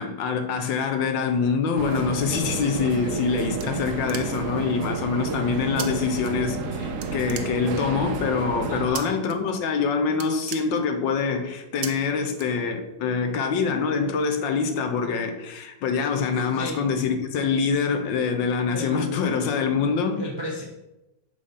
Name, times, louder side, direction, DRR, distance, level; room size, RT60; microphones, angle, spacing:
voice 1, 0.0-20.2, left 5 dB, 75° left, 1.4 m, -25 dB
sound 1, 1.8-8.9, right 4 dB, 65° right, 0.8 m, -31 dB
sound 2, 3.6-4.6 5.8-5.9 6.2-6.7 7.0-8.0 8.9-9.3 9.7-9.8 10.1-11.2 11.8-11.9 12.3-13.0, right 9 dB, 85° right, 1.4 m, -37 dB
voice 2, 8.7-9.1 16.5-16.8 18.7-19.2 20.2-20.6, equal, 45° right, 0.3 m, -33 dB
6.3 x 4.1 x 5.4 m
omnidirectional pair, 2.1 m